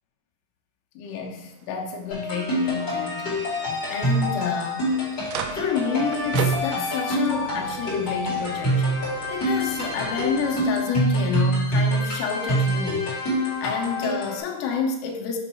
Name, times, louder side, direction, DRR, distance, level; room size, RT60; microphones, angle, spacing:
voice 1, 1.0-4.9 5.5-8.9 9.3-13.4 13.6-15.4, left 6 dB, 85° left, 1 dB, 3.2 m, -29 dB
sound 1, 1.1-10.8, right 7 dB, 85° right, 3.1 m, -39 dB
sound 2, 2.1-14.4, equal, 40° left, 1.7 m, -26 dB
8.3 x 3.0 x 4.3 m, 0.88 s
omnidirectional pair, 5.7 m